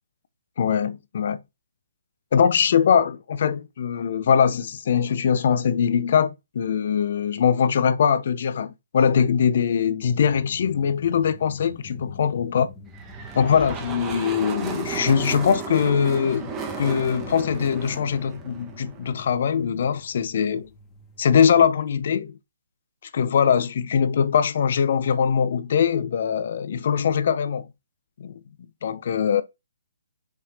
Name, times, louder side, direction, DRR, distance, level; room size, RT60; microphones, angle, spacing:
voice 1, 0.6-1.4 2.3-12.7 13.3-16.5 16.8-20.7 21.2-22.4 23.1-27.7 28.2-28.4 28.8-29.4, left 7 dB, 50° left, 0.4 m, -22 dB
sound 1, 10.0-21.5, left 3 dB, 15° left, 0.7 m, -48 dB
sound 2, 12.9-19.3, right 5 dB, 20° right, 0.8 m, -34 dB
4.9 x 2.7 x 3.3 m
figure-of-eight pair, 135°, 0 cm